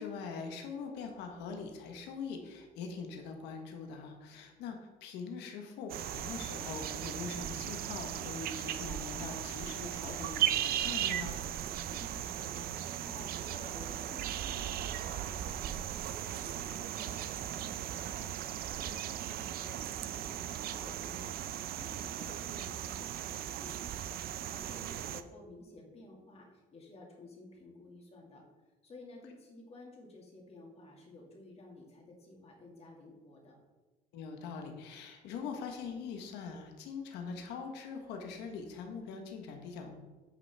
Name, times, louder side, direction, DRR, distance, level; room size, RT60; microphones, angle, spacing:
voice 1, 0.0-11.4 34.1-40.0, left 5 dB, 90° left, 3 dB, 1.1 m, -42 dB
sound 1, 5.9-25.2, right 11 dB, 65° right, 0.5 m, -37 dB
voice 2, 11.9-18.3 18.7-28.4 28.8-33.6, left 2 dB, 35° left, -1 dB, 2.0 m, -53 dB
9.2 x 5.2 x 3.4 m, 1.2 s
cardioid pair, 110°, 17 cm